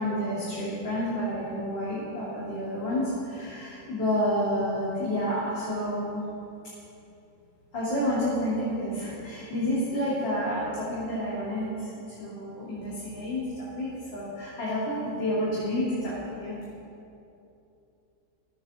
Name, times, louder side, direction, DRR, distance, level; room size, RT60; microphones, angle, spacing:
voice 1, 0.0-6.2 7.7-16.6, equal, 75° left, -8 dB, 3.7 m, -30 dB
16.0 x 9.8 x 7.0 m, 2.8 s
omnidirectional pair, 2.0 m